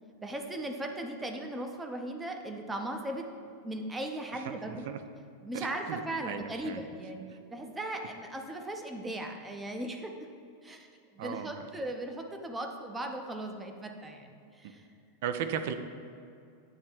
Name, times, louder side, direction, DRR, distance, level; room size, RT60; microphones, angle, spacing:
voice 1, 0.2-4.8 5.4-7.2 7.5-10.3 10.6-10.9 11.1-14.9, right 1 dB, 10° right, 3 dB, 0.6 m, -38 dB
voice 2, 4.3-5.0 5.5-6.8 7.3-7.4 11.2-11.6 14.6-14.7 15.2-15.7, right 8 dB, 50° right, 9 dB, 0.4 m, -37 dB
8.6 x 3.2 x 4.4 m, 2.5 s
figure-of-eight pair, 90°, 0 cm